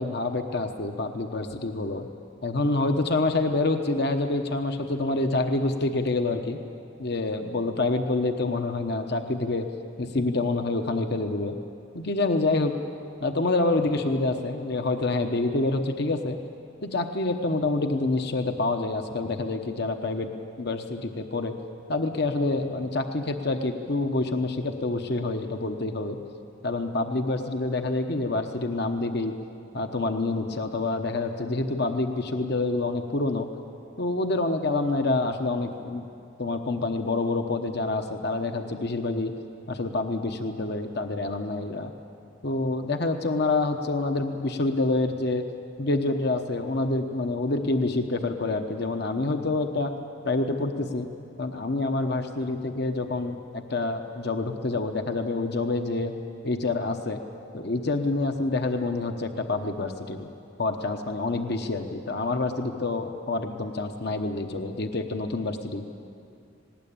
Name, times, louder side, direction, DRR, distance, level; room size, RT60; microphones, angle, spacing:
voice 1, 0.0-2.1 2.4-6.6 7.0-9.7 10.0-11.5 11.9-12.7 13.2-16.4 16.8-20.3 20.6-21.5 21.9-26.2 26.6-29.3 29.7-33.5 34.0-36.0 36.4-39.3 39.7-41.9 42.4-45.4 45.8-49.9 50.2-51.1 51.4-56.1 56.4-57.2 57.5-60.3 60.6-65.8, left 2 dB, 60° left, 6 dB, 1.0 m, -27 dB
19.0 x 18.5 x 8.8 m, 2.5 s
head